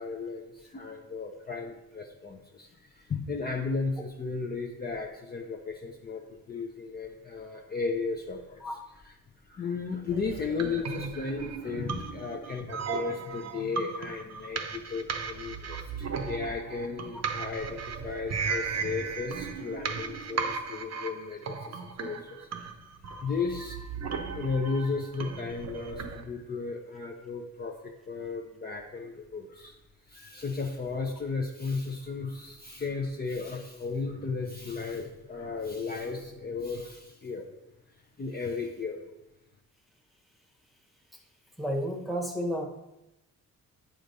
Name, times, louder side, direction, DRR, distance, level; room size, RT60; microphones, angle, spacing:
voice 1, 0.0-9.2 9.5-22.7 23.2-23.8 24.3-29.8 30.1-37.5 38.2-39.0, left 4 dB, 30° left, 1 dB, 0.6 m, -35 dB
sound 1, 10.1-26.2, right 5 dB, 50° right, 0.8 m, -36 dB
voice 2, 41.6-42.7, equal, ahead, 0 dB, 1.0 m, -31 dB
9.2 x 5.0 x 4.0 m, 0.92 s
wide cardioid pair, 150°, 34 cm